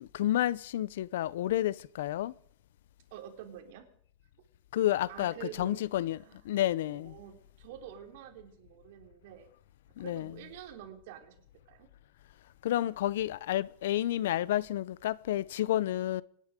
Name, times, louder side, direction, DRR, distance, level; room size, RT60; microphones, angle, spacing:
voice 1, 0.0-2.3 4.7-6.2 6.4-7.2 10.0-10.4 12.6-16.2, left 13 dB, 80° left, 0.6 m, -30 dB
voice 2, 3.1-3.9 5.1-5.9 6.2-6.4 6.9-9.5 10.0-11.4 11.7-11.9, right 10 dB, 55° right, 3.6 m, -47 dB
26.0 x 10.5 x 5.1 m
supercardioid pair, 170°, 0 cm